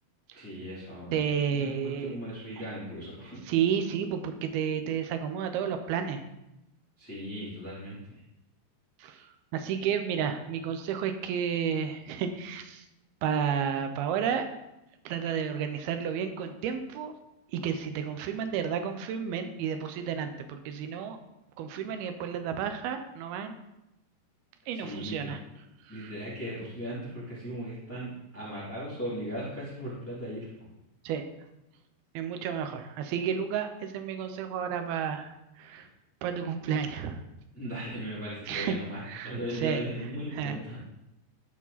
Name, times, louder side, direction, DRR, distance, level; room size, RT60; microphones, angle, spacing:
voice 1, 0.3-1.3 1.6-3.4 7.0-8.0 24.7-25.3 25.9-30.5 35.8-35.9 37.5-40.8, equal, 5° left, -8 dB, 2.0 m, -37 dB
voice 2, 1.1-2.2 3.5-6.2 9.0-9.3 9.5-12.9 13.2-14.5 15.1-17.2 17.5-21.2 21.6-23.5 24.7-25.4 25.9-26.1 31.1-31.2 32.1-35.9 36.2-37.2 38.5-38.8 39.1-39.8 40.3-40.6, right 8 dB, 80° right, 7 dB, 2.4 m, -31 dB
13.0 x 4.9 x 4.1 m, 0.91 s
omnidirectional pair, 4.9 m